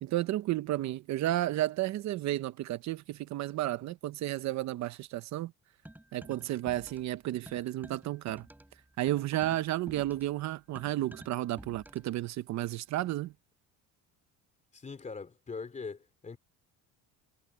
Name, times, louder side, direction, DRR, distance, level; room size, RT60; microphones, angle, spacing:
voice 1, 0.0-5.5 6.1-8.5 9.0-13.3, right 15 dB, 60° right, 0.9 m, -32 dB
sound 1, 5.9-7.2 7.5-12.2, right 1 dB, 5° right, 4.4 m, -51 dB
voice 2, 14.7-16.4, left 4 dB, 20° left, 3.0 m, -41 dB
cardioid pair, 120°, 32 cm